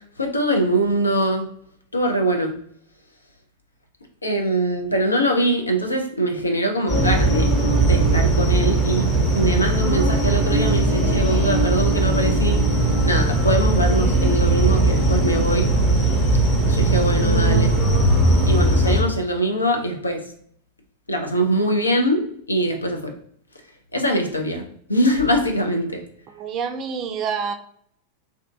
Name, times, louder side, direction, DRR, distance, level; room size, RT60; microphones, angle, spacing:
voice 1, 0.2-1.5 1.9-2.5 4.2-7.5 7.8-9.1 9.3-12.6 13.0-15.7 16.7-17.8 18.5-20.2 21.1-23.1 23.9-24.6 24.9-26.0, right 1 dB, 80° left, 3 dB, 0.5 m, -22 dB
sound 1, 6.9-19.0, right 2 dB, 20° left, 0.7 m, -19 dB
voice 2, 26.3-27.5, right 6 dB, 30° right, 6 dB, 0.3 m, -27 dB
2.6 x 2.4 x 2.2 m, 0.65 s
figure-of-eight pair, 90°, 0 cm